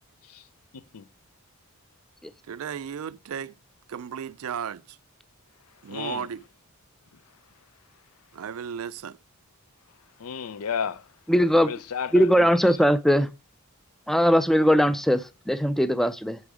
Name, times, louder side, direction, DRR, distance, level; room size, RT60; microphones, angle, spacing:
voice 1, 2.5-3.5 3.9-5.0 5.8-6.4 8.3-9.2, right 7 dB, 75° right, 0.4 m, -34 dB
voice 2, 5.9-6.2 10.2-11.0 11.6-12.3, left 7 dB, 85° left, 0.5 m, -32 dB
voice 3, 11.3-11.7 12.1-13.3 14.1-16.4, equal, ahead, 0.3 m, -20 dB
8.7 x 4.2 x 4.8 m
head